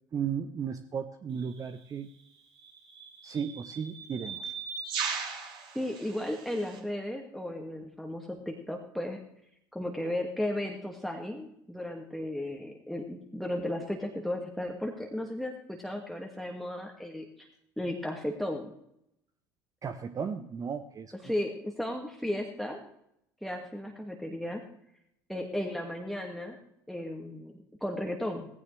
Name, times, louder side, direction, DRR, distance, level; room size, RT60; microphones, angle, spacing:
voice 1, 0.1-2.1 3.2-4.5 19.8-21.1, right 7 dB, 30° right, 9 dB, 1.0 m, -35 dB
sound 1, 1.4-1.6 2.6-6.8, right 6 dB, 50° right, 3.9 m, -38 dB
voice 2, 5.7-9.2 9.7-17.5 17.8-18.7 21.2-22.8 23.4-24.6 25.3-26.6 26.9-27.5 27.8-28.5, left 1 dB, ahead, 1 dB, 2.1 m, -35 dB
18.0 x 16.0 x 3.4 m, 0.77 s
figure-of-eight pair, 65°, 11 cm